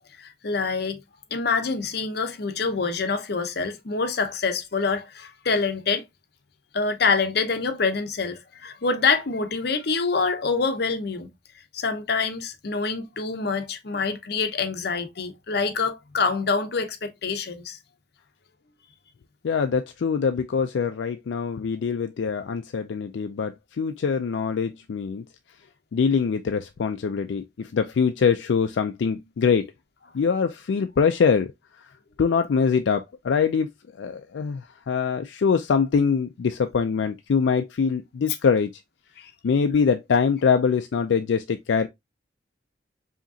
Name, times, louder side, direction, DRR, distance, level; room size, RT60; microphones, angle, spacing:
voice 1, 0.2-1.0 1.3-6.0 6.7-11.3 11.7-17.8 39.2-39.3, left 4 dB, 60° left, 0.7 m, -26 dB
voice 2, 19.4-25.2 25.9-29.7 30.1-31.5 32.2-33.7 34.0-38.7 39.4-41.9, left 6 dB, 80° left, 0.4 m, -23 dB
5.0 x 2.9 x 2.7 m
head